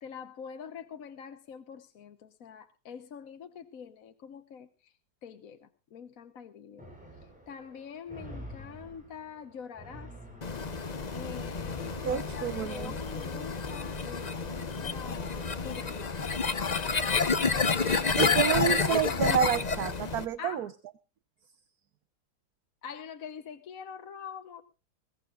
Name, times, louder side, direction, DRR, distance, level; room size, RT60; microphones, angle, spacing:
voice 1, 0.0-4.9 5.2-6.8 7.2-10.1 11.1-16.2 16.8-17.4 19.0-19.1 20.4-20.7 22.8-24.6, left 7 dB, 60° left, 8 dB, 1.3 m, -45 dB
sound 1, 6.8-13.2, equal, 5° right, 6.3 m, -48 dB
sound 2, 10.4-20.2, left 5 dB, 30° left, 0.8 m, -29 dB
voice 2, 12.0-12.9 18.2-20.7, right 9 dB, 65° right, 13 dB, 1.3 m, -29 dB
21.5 x 17.5 x 2.4 m, 0.33 s
omnidirectional pair, 1.8 m